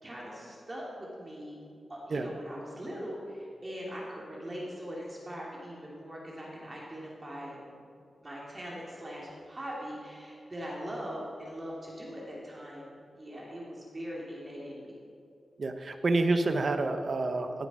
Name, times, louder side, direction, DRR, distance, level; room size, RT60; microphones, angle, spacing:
voice 1, 0.0-1.6 1.9-7.8 8.1-14.9, equal, 25° right, -4 dB, 3.0 m, -41 dB
voice 2, 15.6-17.7, right 2 dB, 45° right, 7 dB, 0.9 m, -28 dB
17.0 x 7.9 x 6.2 m, 2.6 s
wide cardioid pair, 120°, 0 cm